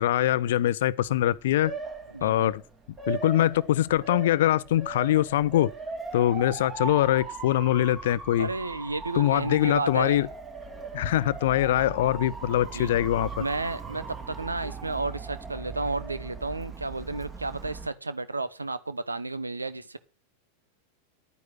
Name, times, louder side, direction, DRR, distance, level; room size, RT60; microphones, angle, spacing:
voice 1, 0.0-1.7 2.2-2.6 3.1-5.7 6.1-8.5 9.1-10.3 10.9-13.3, left 13 dB, 55° left, 0.6 m, -23 dB
Motor vehicle (road) / Siren, 1.1-17.9, right 4 dB, 20° right, 2.6 m, -39 dB
voice 2, 2.1-2.5 8.4-10.2 12.7-12.9 13.4-20.0, right 3 dB, 80° right, 0.9 m, -32 dB
11.0 x 9.5 x 5.9 m
figure-of-eight pair, 90°, 0 cm